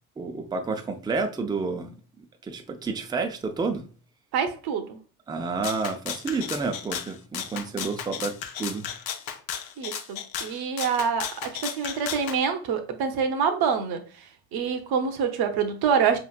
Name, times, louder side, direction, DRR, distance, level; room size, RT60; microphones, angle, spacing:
voice 1, 0.2-1.9 2.2-3.9 5.3-8.9, right 4 dB, 10° right, 0.5 m, -30 dB
voice 2, 4.3-5.0 9.8-14.3 14.5-16.2, right 6 dB, 50° right, 0.9 m, -26 dB
Rattle (instrument), 5.6-12.4, left 9 dB, 85° left, 0.6 m, -34 dB
4.9 x 3.0 x 2.4 m
hypercardioid pair, 65°, 50 cm